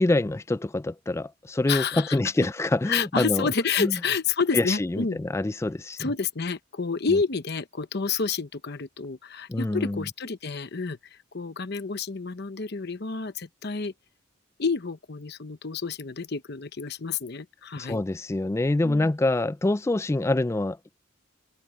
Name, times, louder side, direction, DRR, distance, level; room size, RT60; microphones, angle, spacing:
voice 1, 0.0-3.5 3.8-4.0 4.5-6.1 7.1-7.2 9.5-10.0 17.8-20.8, left 2 dB, 15° left, 0.3 m, -25 dB
voice 2, 1.7-2.2 2.9-5.2 6.0-13.9 14.6-18.0, left 5 dB, 55° left, 0.9 m, -29 dB
head